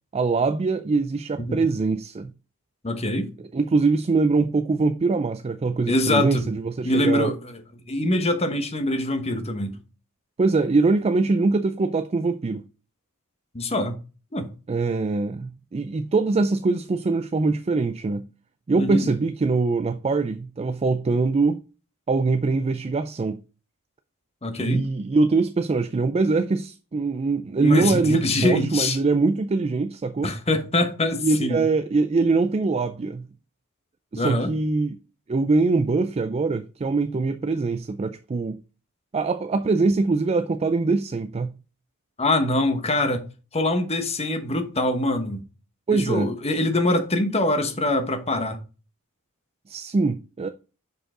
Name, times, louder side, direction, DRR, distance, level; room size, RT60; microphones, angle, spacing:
voice 1, 0.1-2.3 3.5-7.3 10.4-12.6 14.7-18.3 18.7-21.6 22.1-23.4 24.6-30.3 31.2-33.3 34.1-35.0 35.3-38.6 39.1-41.5 45.9-46.3 49.7-50.5, right 3 dB, 30° right, 0.4 m, -23 dB
voice 2, 2.8-3.3 5.9-6.4 6.8-7.6 7.9-9.8 13.5-14.0 14.3-14.5 18.8-19.1 24.4-24.8 27.6-29.0 30.2-31.6 34.1-34.5 42.2-43.2 43.5-45.4 45.9-48.6, left 1 dB, 30° left, 1.1 m, -24 dB
6.6 x 5.3 x 3.7 m
head